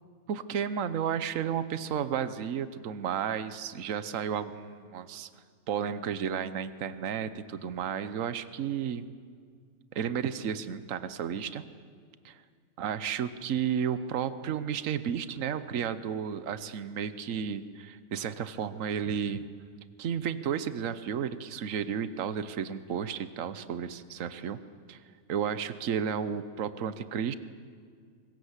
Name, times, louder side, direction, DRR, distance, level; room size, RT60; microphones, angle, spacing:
voice 1, 0.3-5.3 5.7-9.0 9.9-11.6 12.2-12.4 12.8-19.4 20.0-24.6 24.9-25.0 25.3-27.3, right 8 dB, 70° right, 13 dB, 1.3 m, -32 dB
25.5 x 20.5 x 8.1 m, 2.1 s
omnidirectional pair, 1.4 m